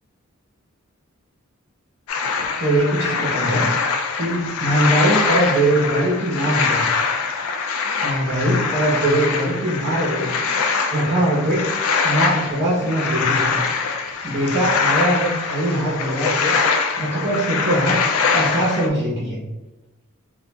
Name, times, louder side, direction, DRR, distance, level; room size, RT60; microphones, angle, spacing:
sound 1, 2.1-18.9, left 5 dB, 80° left, 0.4 m, -23 dB
voice 1, 2.6-3.7 4.1-6.9 8.0-10.3 10.6-11.7 12.0-13.6 14.2-16.6 17.0-18.0 18.3-19.4, right 1 dB, 50° right, -6 dB, 0.8 m, -21 dB
3.9 x 2.4 x 2.2 m, 0.99 s
head